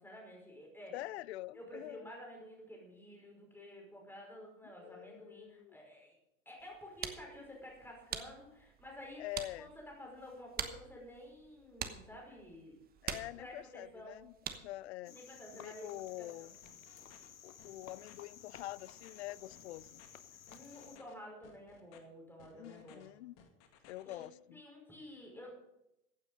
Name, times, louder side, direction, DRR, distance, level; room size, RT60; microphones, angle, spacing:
voice 1, 0.0-1.0 1.5-6.2 6.5-9.2 9.6-12.8 13.4-14.2 15.1-16.6 20.3-23.1 24.0-24.2 24.5-25.7, equal, 5° left, -1 dB, 5.3 m, -51 dB
voice 2, 0.9-2.0 4.8-5.8 9.2-9.7 13.0-14.3 14.6-15.1 15.5-16.5 17.4-20.0 22.5-23.4 23.8-24.6, left 16 dB, 55° left, 23 dB, 0.5 m, -45 dB
sound 1, 6.6-14.9, right 8 dB, 20° right, 1.1 m, -46 dB
Cricket, 15.0-21.0, left 8 dB, 80° left, 1.0 m, -55 dB
sound 2, 16.6-17.3 17.6-18.1 18.5-19.2 19.5-20.1 20.5-21.1 21.4-22.0 22.4-23.1 23.4-24.3, left 7 dB, 40° left, 2.1 m, -61 dB
15.5 x 9.0 x 5.3 m, 0.86 s
figure-of-eight pair, 95°, 41 cm